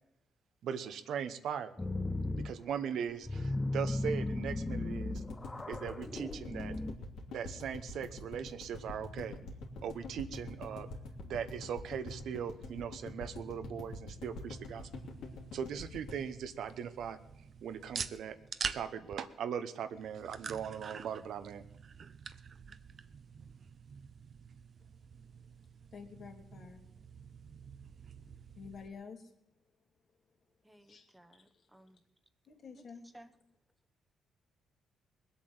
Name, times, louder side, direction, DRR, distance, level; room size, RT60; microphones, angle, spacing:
voice 1, 0.6-1.7 2.4-5.2 5.7-6.7 7.3-9.4 9.8-10.9 11.2-14.9 15.5-17.2 17.6-18.4 18.7-21.6, right 8 dB, 70° right, 10 dB, 1.1 m, -39 dB
sound 1, 1.8-2.5 2.9-6.9, left 2 dB, 20° left, 0.8 m, -36 dB
sound 2, 5.1-17.3 17.6-17.7 17.9-18.0, left 2 dB, 80° left, 3.0 m, -45 dB
sound 3, 14.6-28.9, right 6 dB, 50° right, 0.8 m, -47 dB
voice 2, 25.9-26.8 28.5-29.3 30.8-31.7 32.5-33.1, left 5 dB, 55° left, 3 dB, 2.8 m, -50 dB
voice 3, 30.6-32.0 33.1-33.3, right 1 dB, 10° right, 8 dB, 1.2 m, -58 dB
20.5 x 8.3 x 8.0 m, 0.82 s
cardioid pair, 90°, 0 cm